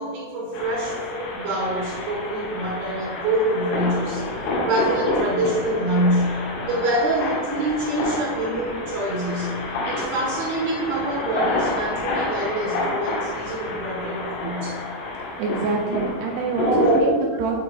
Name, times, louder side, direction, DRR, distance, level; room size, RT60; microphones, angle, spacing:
voice 1, 0.0-4.2 4.6-9.6 9.9-14.8 15.8-15.9 16.6-17.1, right 1 dB, 65° right, -5 dB, 3.2 m, -25 dB
sound 1, 0.5-17.0, left 2 dB, 90° left, 4.0 m, -29 dB
voice 2, 15.4-16.7 17.0-17.6, right 4 dB, 80° right, 1 dB, 2.4 m, -26 dB
11.0 x 3.9 x 3.9 m, 1.5 s
omnidirectional pair, 5.3 m